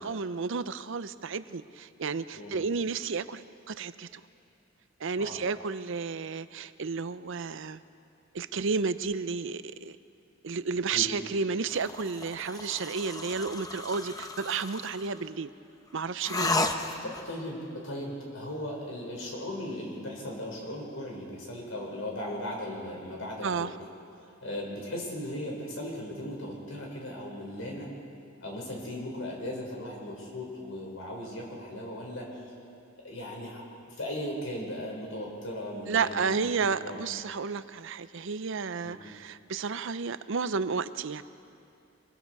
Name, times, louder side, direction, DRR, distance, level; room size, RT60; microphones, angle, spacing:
voice 1, 0.0-4.2 5.0-7.8 8.3-10.0 10.4-15.5 15.9-16.5 23.4-23.7 35.9-41.2, right 5 dB, 70° right, 13 dB, 0.6 m, -32 dB
voice 2, 2.3-2.6 5.2-5.4 10.9-11.1 16.3-16.4 17.0-17.6 17.8-23.7 24.2-27.9 28.4-32.4 33.0-37.0 38.8-39.0, left 1 dB, 80° left, -1 dB, 5.3 m, -37 dB
sound 1, 11.7-15.1 16.2-17.3, left 2 dB, 20° left, 0.9 m, -33 dB
26.0 x 21.5 x 4.8 m, 2.5 s
head